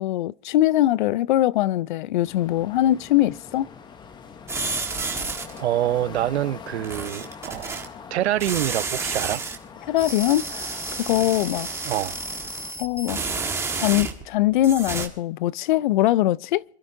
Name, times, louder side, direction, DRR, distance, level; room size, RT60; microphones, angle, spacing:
voice 1, 0.0-3.7 9.9-11.7 12.8-13.2 13.7-16.6, left 14 dB, 50° left, 0.5 m, -22 dB
sound 1, 2.2-12.7, left 6 dB, 15° left, 0.9 m, -43 dB
sound 2, 4.5-5.6 6.8-7.8 8.4-9.6 10.0-14.3 14.6-15.1, right 4 dB, 10° right, 1.5 m, -30 dB
voice 2, 5.6-7.8 8.1-9.4 11.8-12.1, right 13 dB, 70° right, 0.7 m, -26 dB
27.0 x 12.0 x 2.6 m
hypercardioid pair, 140°, 33 cm